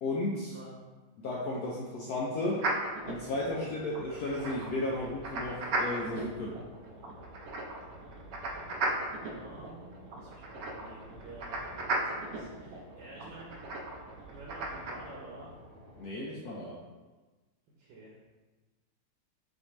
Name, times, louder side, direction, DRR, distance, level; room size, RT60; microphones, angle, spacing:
voice 1, 0.0-0.5 1.2-2.6 3.1-6.5 16.0-16.8, left 2 dB, 85° left, -4 dB, 0.8 m, -34 dB
sound 1, 2.6-14.9, right 2 dB, 85° right, 0.7 m, -37 dB
sound 2, 3.0-16.1, equal, 40° left, 1.7 m, -53 dB
voice 2, 9.2-13.6 14.3-15.5 17.8-18.1, right 2 dB, 65° right, -4 dB, 1.3 m, -49 dB
6.5 x 2.6 x 3.0 m, 1.2 s
omnidirectional pair, 2.3 m